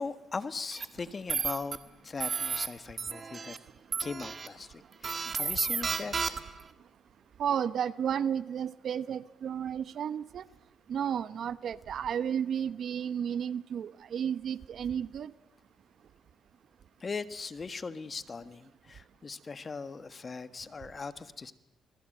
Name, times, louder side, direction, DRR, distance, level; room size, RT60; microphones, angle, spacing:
voice 1, 0.0-3.5 4.0-6.4 17.0-21.5, left 4 dB, 35° left, 12 dB, 1.5 m, -39 dB
sound 1, 0.7-0.8 1.3-1.8 2.2-2.7 3.0-3.6 3.9-4.5 5.0-6.6, right 5 dB, 40° right, 1.9 m, -32 dB
voice 2, 7.4-10.4 10.9-15.3, right 8 dB, 60° right, 15 dB, 0.9 m, -32 dB
28.0 x 21.0 x 7.8 m, 0.86 s
cardioid pair, 90°, 0 cm